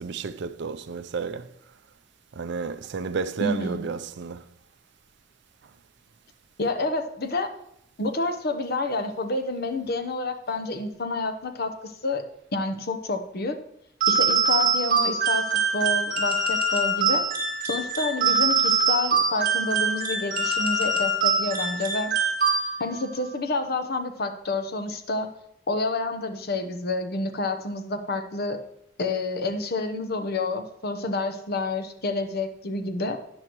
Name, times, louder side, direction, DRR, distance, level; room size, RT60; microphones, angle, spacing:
voice 1, 0.0-1.5 2.3-4.4, right 5 dB, 60° right, 0.5 m, -31 dB
voice 2, 3.4-3.8 6.6-7.5 8.0-12.3 12.5-13.6 14.1-17.2 17.6-22.1 22.8-25.3 25.7-28.6 29.0-33.2, left 2 dB, 55° left, 0.9 m, -29 dB
sound 1, 14.0-23.0, right 4 dB, 45° right, 2.0 m, -24 dB
12.5 x 9.7 x 3.1 m
head